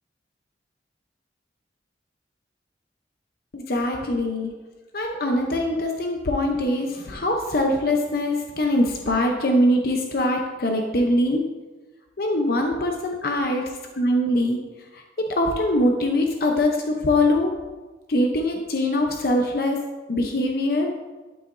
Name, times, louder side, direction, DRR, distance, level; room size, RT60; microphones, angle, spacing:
voice 1, 3.5-4.5 4.9-11.4 12.2-13.7 14.0-14.6 14.9-17.5 18.1-19.8 20.1-20.9, left 1 dB, 55° left, 2 dB, 0.7 m, -22 dB
12.0 x 5.8 x 2.6 m, 1.2 s
head